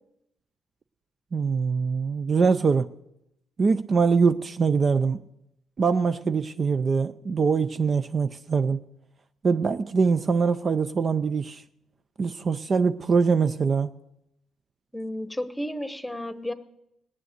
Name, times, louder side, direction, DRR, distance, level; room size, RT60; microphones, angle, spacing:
voice 1, 1.3-2.9 3.6-5.2 5.8-8.8 9.4-11.6 12.2-13.9, right 5 dB, 40° right, 0.5 m, -23 dB
voice 2, 14.9-16.5, left 1 dB, 5° left, 1.1 m, -32 dB
18.5 x 7.6 x 8.0 m
cardioid pair, 90°, 0 cm